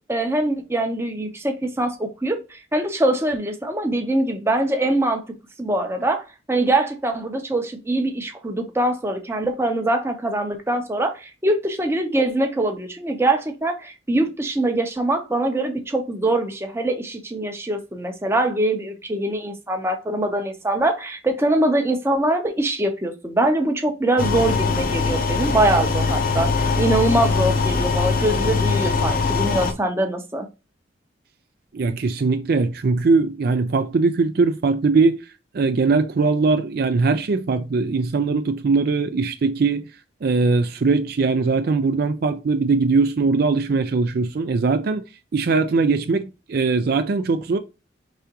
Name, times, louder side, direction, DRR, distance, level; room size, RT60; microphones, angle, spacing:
voice 1, 0.1-5.2 5.6-30.5, right 1 dB, 15° right, 0.7 m, -23 dB
spaceship launch, 24.2-29.7, left 4 dB, 45° left, 0.6 m, -21 dB
voice 2, 31.7-35.2 35.5-39.9 40.2-45.0 45.3-47.6, right 4 dB, 50° right, 0.4 m, -20 dB
5.0 x 3.4 x 2.8 m
head